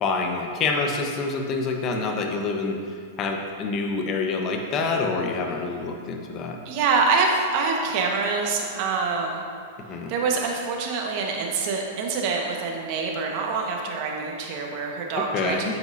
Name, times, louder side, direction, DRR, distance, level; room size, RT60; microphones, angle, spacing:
voice 1, 0.0-2.7 3.2-6.6 9.9-10.1 15.3-15.7, left 4 dB, 35° left, 2 dB, 1.2 m, -26 dB
voice 2, 6.6-9.4 10.1-15.8, right 4 dB, 50° right, 0 dB, 1.5 m, -25 dB
9.5 x 7.8 x 2.8 m, 2.4 s
hypercardioid pair, 115°, 0 cm